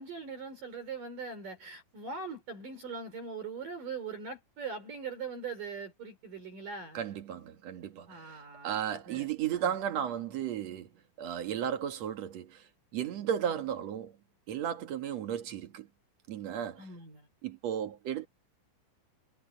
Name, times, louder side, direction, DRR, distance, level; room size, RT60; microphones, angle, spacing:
voice 1, 0.0-7.0 8.1-9.3 9.6-9.7 16.8-17.3, right 5 dB, 45° right, 5.1 m, -41 dB
voice 2, 6.9-10.9 11.2-14.1 14.5-15.9 16.3-16.9 17.4-18.3, right 9 dB, 70° right, 1.6 m, -34 dB
omnidirectional pair, 5.6 m